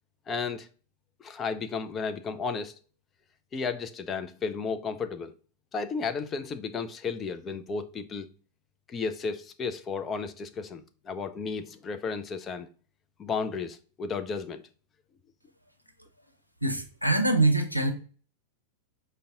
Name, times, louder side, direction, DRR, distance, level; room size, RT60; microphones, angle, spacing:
voice 1, 0.3-0.7 1.2-2.7 3.5-5.3 5.7-8.3 8.9-12.7 13.2-14.6, left 5 dB, 25° left, 0.4 m, -33 dB
voice 2, 16.6-17.9, right 2 dB, 90° right, 0.5 m, -24 dB
5.2 x 2.2 x 3.6 m
figure-of-eight pair, 90°, 0 cm